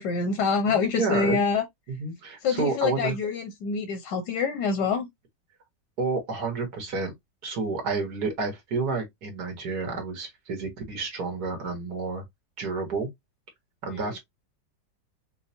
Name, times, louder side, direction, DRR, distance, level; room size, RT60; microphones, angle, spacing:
voice 1, 0.0-1.6 2.4-5.1 14.0-14.1, left 5 dB, 85° left, 1.5 m, -26 dB
voice 2, 0.7-1.4 1.9-3.2 6.0-7.1 7.4-12.2 12.6-13.1 13.8-14.2, right 4 dB, 65° right, 1.8 m, -30 dB
5.4 x 2.1 x 2.7 m
omnidirectional pair, 1.9 m